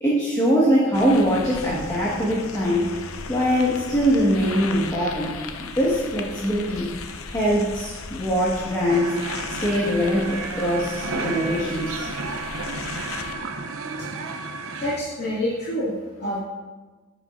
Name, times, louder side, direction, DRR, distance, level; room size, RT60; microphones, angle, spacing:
voice 1, 0.0-2.9 3.3-6.9 7.3-9.2 9.5-12.1, equal, 15° left, -6 dB, 1.7 m, -22 dB
sound 1, 0.9-13.4, left 4 dB, 85° left, 0.7 m, -36 dB
sound 2, 8.9-15.0, right 3 dB, 80° right, 0.8 m, -32 dB
voice 2, 14.8-15.9 16.2-16.4, left 1 dB, 50° left, -9 dB, 2.3 m, -26 dB
12.5 x 9.9 x 2.6 m, 1.3 s
head